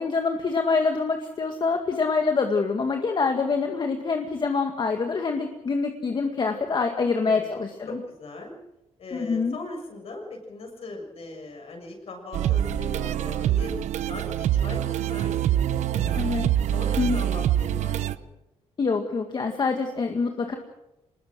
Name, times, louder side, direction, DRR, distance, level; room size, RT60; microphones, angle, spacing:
voice 1, 0.0-8.0 9.1-9.6 16.1-16.5 17.0-17.2 18.8-20.5, left 4 dB, 40° left, 4 dB, 2.0 m, -25 dB
voice 2, 7.0-7.5 7.9-8.6 9.0-13.7 14.1-16.2 16.7-18.3, left 2 dB, 60° left, 2 dB, 7.1 m, -40 dB
sound 1, 12.3-18.1, right 11 dB, 85° right, 0.9 m, -25 dB
25.0 x 21.0 x 6.3 m, 0.92 s
cardioid pair, 125°, 12 cm